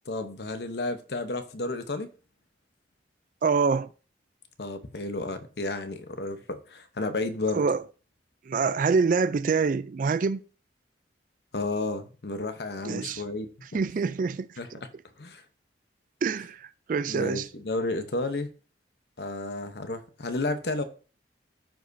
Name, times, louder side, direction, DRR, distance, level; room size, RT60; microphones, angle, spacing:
voice 1, 0.1-2.1 4.6-7.6 11.5-13.5 14.6-14.7 15.2-15.4 17.1-18.5 19.2-20.8, left 2 dB, 60° left, 0.9 m, -32 dB
voice 2, 3.4-3.9 7.5-7.8 8.5-10.4 12.8-13.2 13.7-14.5 16.2-17.5, right 5 dB, 45° right, 0.3 m, -25 dB
14.0 x 5.1 x 2.7 m
head